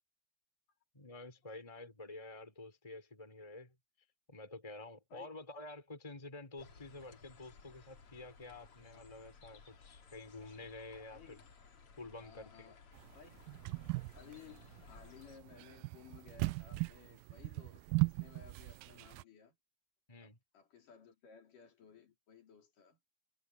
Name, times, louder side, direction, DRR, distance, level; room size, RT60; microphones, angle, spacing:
voice 1, 0.9-3.7 4.3-11.5 12.0-12.7 20.1-20.4, left 2 dB, 10° left, 3.6 m, -50 dB
sound 1, 6.6-15.4, left 5 dB, 45° left, 3.1 m, -59 dB
voice 2, 11.1-11.5 12.2-12.8 13.2-13.5 14.1-19.6 20.2-20.3 20.5-23.0, left 7 dB, 70° left, 5.5 m, -58 dB
sound 2, 13.0-19.2, right 24 dB, 90° right, 2.3 m, -38 dB
omnidirectional pair, 3.9 m